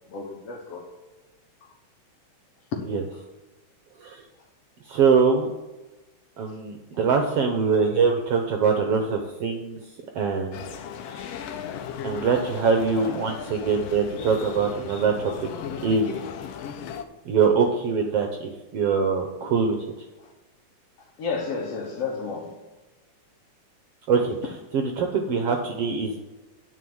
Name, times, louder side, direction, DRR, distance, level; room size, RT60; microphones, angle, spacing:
voice 1, 0.1-0.9 21.2-22.5, left 4 dB, 60° left, 2.0 m, -31 dB
voice 2, 4.9-5.5 6.4-9.8 10.1-11.4 12.0-15.5 15.8-16.2 17.2-19.8 24.1-26.2, right 5 dB, 70° right, 1.5 m, -23 dB
sound 1, 10.5-17.0, left 8 dB, 80° left, 1.5 m, -36 dB
9.9 x 4.7 x 7.8 m
omnidirectional pair, 3.6 m